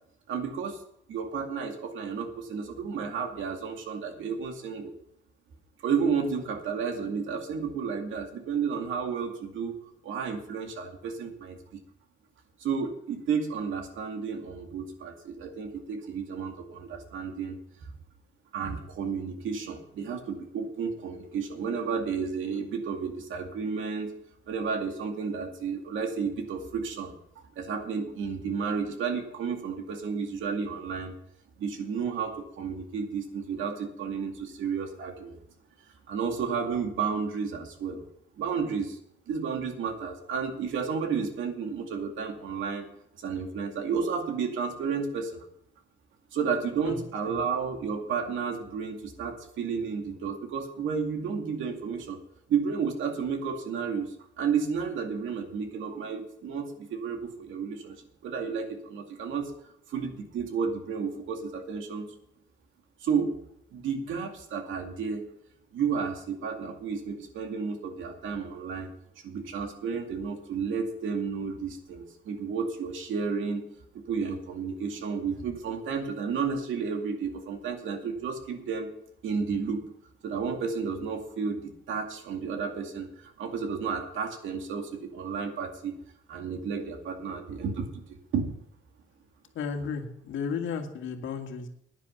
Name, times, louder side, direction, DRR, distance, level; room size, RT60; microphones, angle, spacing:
voice 1, 0.3-0.8 1.1-4.9 5.8-9.8 10.0-11.6 12.6-17.9 18.5-24.1 24.5-27.1 27.6-31.2 31.6-35.3 36.1-38.0 38.4-39.0 39.3-42.9 43.2-45.5 46.3-52.2 52.5-58.0 58.2-59.5 59.9-62.1 63.0-63.4 63.7-65.3 65.7-68.9 69.2-73.6 73.9-78.9 79.2-79.8 80.2-85.9 86.3-87.9 88.3-88.5, right 6 dB, 80° right, 4 dB, 2.3 m, -32 dB
voice 2, 89.5-91.7, left 6 dB, 75° left, 5 dB, 1.8 m, -34 dB
11.0 x 9.8 x 5.7 m, 0.73 s
cardioid pair, 90°, 20 cm